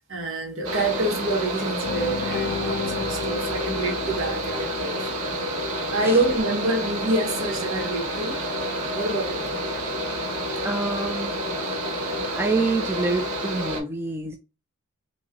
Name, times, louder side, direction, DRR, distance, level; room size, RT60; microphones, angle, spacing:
voice 1, 0.1-5.0 5.9-9.5, right 2 dB, 65° right, 1.4 m, -27 dB
Mechanical fan, 0.6-13.8, equal, 85° right, 1.1 m, -29 dB
sound 1, 1.8-5.9, left 6 dB, 40° left, 0.8 m, -34 dB
voice 2, 10.6-11.3 12.0-14.4, right 3 dB, 10° right, 0.3 m, -27 dB
3.1 x 2.6 x 3.7 m
head